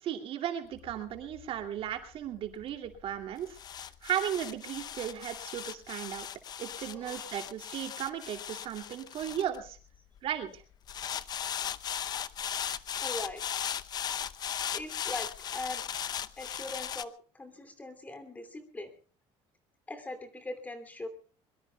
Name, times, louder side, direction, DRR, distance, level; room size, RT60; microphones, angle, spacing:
voice 1, 0.0-3.6 4.0-6.3 6.6-9.8 10.2-10.6, right 10 dB, 50° right, 5 dB, 2.7 m, -35 dB
sound 1, 0.7-10.2 10.9-17.0, left 9 dB, 35° left, 0.7 m, -38 dB
voice 2, 6.9-7.4 13.0-13.4 14.7-15.8 16.4-18.9 19.9-21.1, left 2 dB, 15° left, 7 dB, 2.8 m, -41 dB
23.5 x 23.0 x 2.3 m, 0.39 s
cardioid pair, 160°, 12 cm